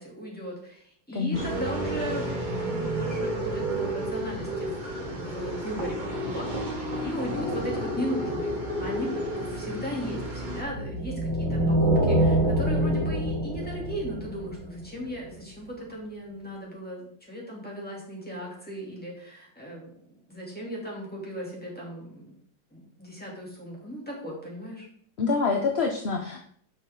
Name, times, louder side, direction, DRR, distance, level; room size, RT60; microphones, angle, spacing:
voice 1, 0.0-6.7 7.0-9.1 9.4-22.3 22.7-24.9, equal, 5° left, -4 dB, 3.1 m, -37 dB
voice 2, 1.1-1.4 25.2-26.4, left 4 dB, 50° left, 2 dB, 0.8 m, -26 dB
sound 1, 1.3-10.6, right 1 dB, 25° right, 1.9 m, -31 dB
sound 2, 10.6-15.0, right 1 dB, 70° right, 2.0 m, -25 dB
11.0 x 6.1 x 3.9 m, 0.64 s
omnidirectional pair, 2.0 m